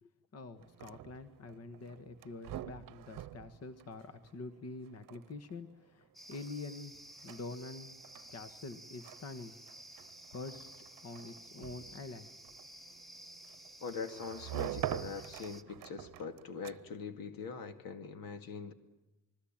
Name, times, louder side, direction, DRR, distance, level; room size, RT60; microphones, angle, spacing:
voice 1, 0.0-8.0 8.3-9.6 10.3-10.7 11.0-12.3, left 3 dB, 45° left, 11 dB, 1.5 m, -46 dB
sound 1, 0.6-17.1, right 13 dB, 65° right, 0.8 m, -47 dB
sound 2, 6.1-15.6, right 1 dB, ahead, 0.9 m, -53 dB
voice 2, 13.8-18.7, left 5 dB, 80° left, 10 dB, 2.2 m, -43 dB
28.0 x 21.0 x 8.9 m, 0.96 s
cardioid pair, 145°, 34 cm